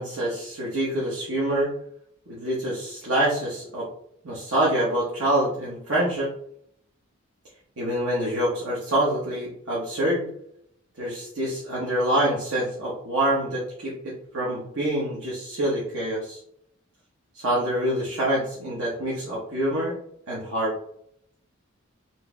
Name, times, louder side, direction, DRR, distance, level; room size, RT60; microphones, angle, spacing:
voice 1, 0.0-1.7 2.3-3.9 4.2-6.3 7.8-10.2 11.0-16.4 17.3-19.9 20.3-20.7, right 1 dB, 75° right, -7 dB, 1.0 m, -26 dB
4.4 x 2.6 x 2.2 m, 0.69 s
head